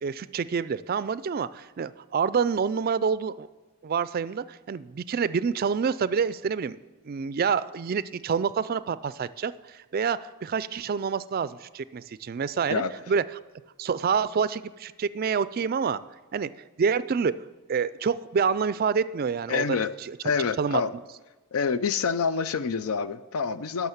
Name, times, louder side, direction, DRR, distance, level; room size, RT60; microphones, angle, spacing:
voice 1, 0.0-3.5 3.8-6.8 7.0-13.4 13.8-16.0 16.3-16.5 16.8-17.4 17.7-19.8 20.0-20.2 20.6-20.8, right 6 dB, 45° right, 16 dB, 0.3 m, -27 dB
voice 2, 19.5-19.9 20.2-20.9 21.5-23.9, left 5 dB, 80° left, 14 dB, 0.5 m, -27 dB
12.0 x 5.9 x 7.1 m, 1.2 s
head